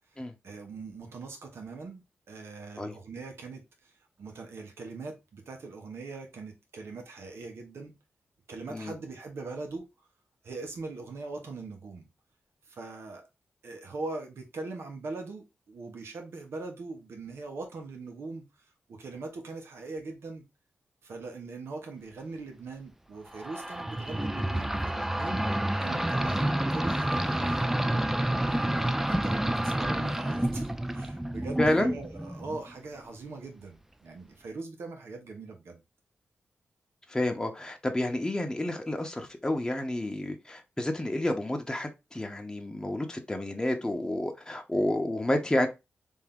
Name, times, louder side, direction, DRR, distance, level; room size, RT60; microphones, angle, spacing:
voice 1, 0.1-3.9 4.2-7.9 8.5-9.9 10.4-12.1 12.7-13.3 13.6-20.4 21.0-25.4 25.8-27.7 28.5-35.8, right 3 dB, 80° right, 1.0 m, -41 dB
sound 1, 23.3-32.7, right 1 dB, 5° right, 0.3 m, -29 dB
voice 2, 31.6-31.9 37.1-45.7, left 1 dB, 15° left, 0.9 m, -30 dB
3.5 x 2.7 x 3.5 m
cardioid pair, 60°, 4 cm